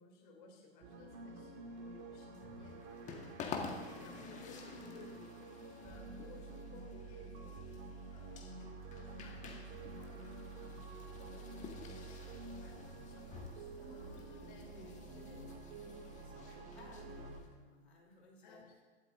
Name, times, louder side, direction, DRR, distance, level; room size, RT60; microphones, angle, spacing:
voice 1, 0.0-3.3 4.0-5.2 5.8-7.6 8.1-15.0 18.4-18.6, left 3 dB, 50° left, 0 dB, 3.0 m, -60 dB
sound 1, 0.8-17.4, right 3 dB, 35° right, 2.3 m, -49 dB
sound 2, 2.3-17.5, left 5 dB, 20° left, 1.4 m, -51 dB
voice 2, 4.3-5.2 13.8-18.8, left 2 dB, 75° left, -1 dB, 3.3 m, -59 dB
24.0 x 12.0 x 2.6 m, 1.4 s
figure-of-eight pair, 110°, 33 cm